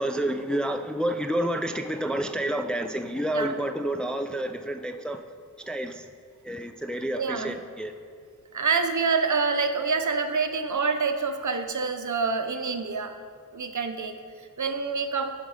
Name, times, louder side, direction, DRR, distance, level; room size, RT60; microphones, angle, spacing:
voice 1, 0.0-5.2 5.7-6.0 6.4-7.9, right 1 dB, ahead, 6 dB, 0.5 m, -29 dB
voice 2, 7.1-7.6 8.5-13.2 13.5-15.3, right 4 dB, 55° right, 7 dB, 0.8 m, -27 dB
10.5 x 5.2 x 4.9 m, 2.3 s
cardioid pair, 45°, 35 cm